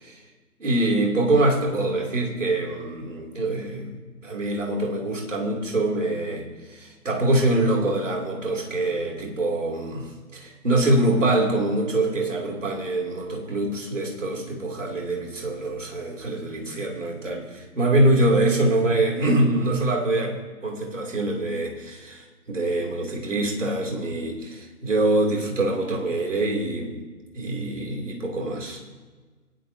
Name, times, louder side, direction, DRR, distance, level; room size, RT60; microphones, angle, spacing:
voice 1, 0.6-10.1 10.3-20.3 20.6-27.0 27.3-28.8, right 2 dB, 55° right, 0 dB, 2.8 m, -24 dB
18.5 x 10.0 x 2.7 m, 1.4 s
figure-of-eight pair, 155°, 45 cm